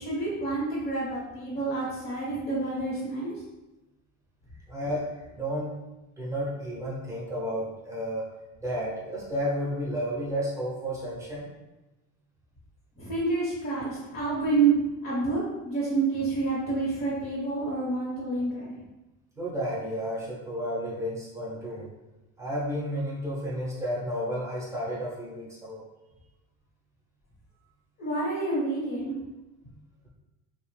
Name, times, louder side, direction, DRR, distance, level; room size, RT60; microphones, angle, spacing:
voice 1, 0.0-3.3 13.0-18.7 28.0-29.2, right 3 dB, 45° left, -7 dB, 0.9 m, -28 dB
voice 2, 4.7-5.8 6.2-8.3 8.6-11.5 19.4-21.9 22.4-25.8, equal, 10° right, -6 dB, 0.6 m, -32 dB
2.9 x 2.1 x 3.1 m, 1.0 s
cardioid pair, 170°, 34 cm